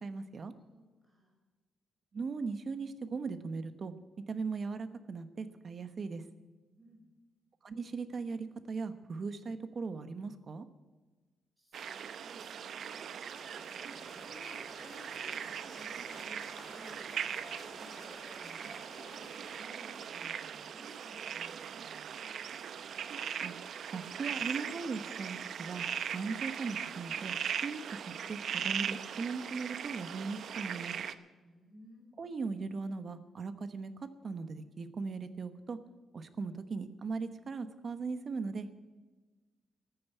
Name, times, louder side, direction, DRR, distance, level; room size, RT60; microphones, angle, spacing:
voice 1, 0.0-0.5 2.1-3.9 4.3-6.2 7.6-10.7 23.4-23.5 23.9-25.8 26.1-27.3 27.6-31.0 32.2-35.8 36.1-38.7, right 4 dB, 40° right, 11 dB, 1.1 m, -39 dB
voice 2, 0.7-1.3 6.8-7.1 11.6-13.1 13.5-17.1 17.4-22.1 31.4-32.1, equal, 10° right, -1 dB, 5.8 m, -57 dB
sound 1, 11.7-31.1, right 8 dB, 65° right, 0.7 m, -40 dB
sound 2, 13.3-19.6, left 1 dB, 20° left, 3.9 m, -53 dB
14.0 x 9.3 x 8.3 m, 1.3 s
cardioid pair, 140°, 0 cm